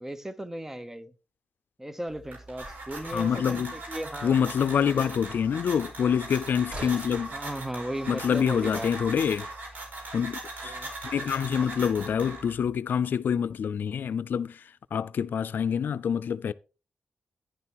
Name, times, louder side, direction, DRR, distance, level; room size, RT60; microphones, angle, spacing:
voice 1, 0.0-1.1 1.8-4.4 4.8-5.1 7.3-8.9 10.6-10.9, right 1 dB, 10° right, 0.8 m, -36 dB
sound 1, 2.1-12.7, right 2 dB, 75° right, 4.6 m, -40 dB
sound 2, 2.6-7.6, right 1 dB, 40° right, 4.7 m, -47 dB
voice 2, 3.1-3.7 4.2-7.3 8.1-9.5 10.1-10.7 11.0-14.6 14.9-16.5, left 7 dB, 80° left, 0.4 m, -26 dB
11.0 x 10.5 x 3.0 m
cardioid pair, 80°, 3 cm